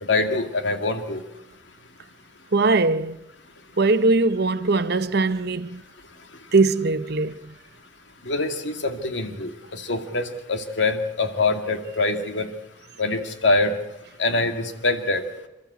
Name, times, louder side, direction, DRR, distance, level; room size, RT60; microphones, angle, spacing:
voice 1, 0.0-1.2 8.3-12.5 13.0-13.7 14.2-15.2, left 3 dB, 75° left, 2.3 m, -24 dB
voice 2, 2.5-3.2 3.8-5.8 6.5-7.4, right 3 dB, 60° right, 0.9 m, -20 dB
28.5 x 13.5 x 8.2 m
head